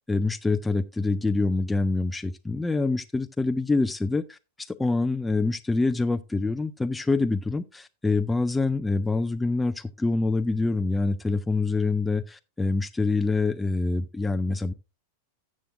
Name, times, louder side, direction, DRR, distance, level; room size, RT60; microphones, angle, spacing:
voice 1, 0.0-14.7, left 3 dB, 10° left, 0.4 m, -26 dB
13.5 x 7.5 x 2.6 m
figure-of-eight pair, 90°, 0 cm